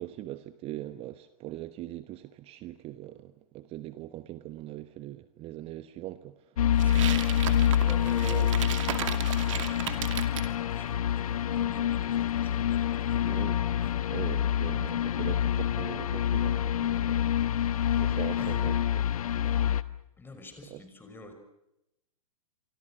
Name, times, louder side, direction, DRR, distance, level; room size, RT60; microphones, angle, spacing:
voice 1, 0.0-6.4 8.2-8.5 13.3-13.6 14.1-17.2 17.6-17.7 18.0-19.0 20.7-20.8, right 15 dB, 30° right, 1.1 m, -41 dB
sound 1, 6.6-19.8, left 10 dB, 70° left, 1.2 m, -27 dB
voice 2, 6.8-7.3 7.8-9.1 9.5-13.4 13.8-13.9 18.4-18.7 19.4-19.5 20.2-21.3, left 2 dB, 10° left, 5.8 m, -48 dB
sound 2, 6.8-10.5, right 11 dB, 55° right, 2.4 m, -36 dB
27.5 x 25.0 x 6.4 m
figure-of-eight pair, 110°, 19 cm